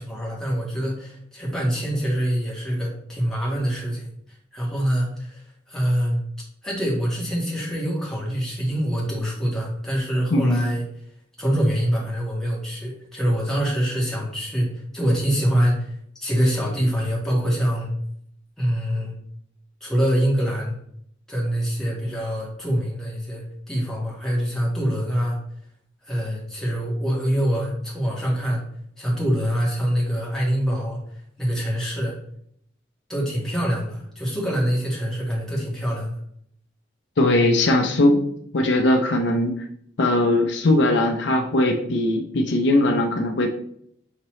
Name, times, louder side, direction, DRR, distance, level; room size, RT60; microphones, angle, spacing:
voice 1, 0.0-4.1 4.5-6.2 6.6-10.8 11.4-15.9 16.2-17.9 18.6-19.1 19.8-20.8 21.3-25.4 26.0-28.6 29.0-32.2 33.1-36.2, equal, 5° left, -5 dB, 1.4 m, -25 dB
voice 2, 10.3-10.7 37.2-38.2 38.5-39.7 40.0-43.5, left 1 dB, 75° left, 4 dB, 0.6 m, -20 dB
5.8 x 2.8 x 3.1 m, 0.67 s
head